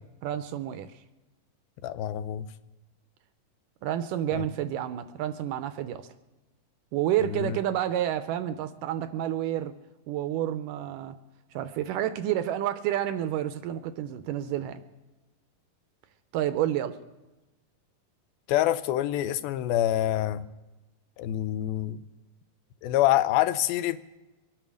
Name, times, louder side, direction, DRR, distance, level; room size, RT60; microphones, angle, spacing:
voice 1, 0.2-0.9 3.8-6.0 6.9-9.7 10.1-11.2 11.5-14.8 16.3-17.0, right 11 dB, 80° right, 10 dB, 2.1 m, -29 dB
voice 2, 1.8-2.5 4.3-4.4 7.3-7.6 18.5-20.5 21.2-22.0 22.8-24.0, left 13 dB, 90° left, 13 dB, 2.5 m, -26 dB
23.0 x 9.0 x 6.3 m, 1.1 s
omnidirectional pair, 4.1 m